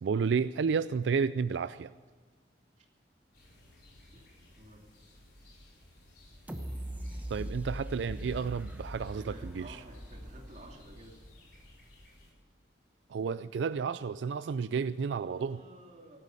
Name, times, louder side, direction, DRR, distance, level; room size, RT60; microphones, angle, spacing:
voice 1, 0.0-1.9 7.3-9.8 13.1-15.6, right 5 dB, 80° right, 14 dB, 0.4 m, -31 dB
sound 1, 3.3-12.3, left 1 dB, 60° left, 4.9 m, -57 dB
sound 2, 6.5-11.4 11.8-11.9, equal, 10° right, 1.0 m, -41 dB
voice 2, 9.1-11.2 15.2-16.2, right 1 dB, 40° right, -1 dB, 2.9 m, -52 dB
16.5 x 12.0 x 6.7 m, 1.5 s
head